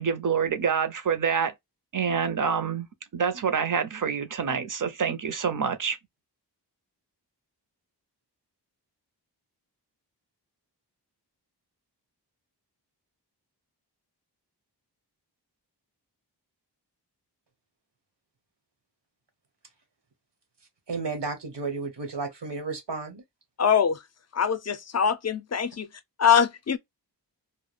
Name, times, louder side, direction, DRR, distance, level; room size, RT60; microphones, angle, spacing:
voice 1, 0.0-1.5 1.9-2.9 3.1-6.0, right 6 dB, 50° right, 0.5 m, -26 dB
voice 2, 20.9-23.2, right 4 dB, 80° right, 0.9 m, -33 dB
voice 3, 23.6-24.0 24.3-25.9 26.2-26.8, left 7 dB, 40° left, 0.4 m, -23 dB
2.3 x 2.0 x 3.1 m
wide cardioid pair, 65°, 42 cm